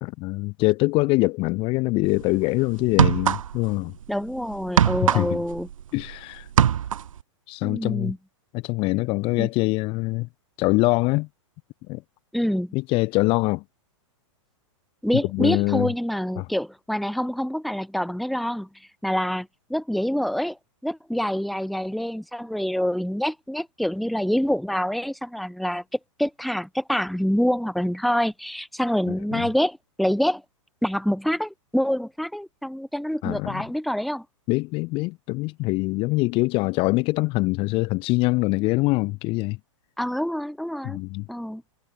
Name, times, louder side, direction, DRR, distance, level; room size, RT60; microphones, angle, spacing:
voice 1, 0.0-3.9 5.0-5.4 5.9-6.5 7.5-8.1 8.5-10.3 10.6-11.3 11.9-12.0 12.7-13.6 15.3-15.9 16.4-16.5 29.1-29.5 33.2-33.7 34.5-39.6 40.8-41.3, left 23 dB, 35° left, 0.9 m, -24 dB
sound 1, 2.0-2.2 2.8-3.8 4.0-6.1 6.4-7.2, right 9 dB, 90° right, 1.0 m, -21 dB
voice 2, 4.1-5.7 7.6-8.2 9.4-9.5 12.3-12.8 15.0-18.7 19.0-20.6 20.8-25.8 26.2-30.4 30.8-34.2 40.0-41.0 41.3-41.6, equal, ahead, 1.4 m, -26 dB
hypercardioid pair, 140°, 17 cm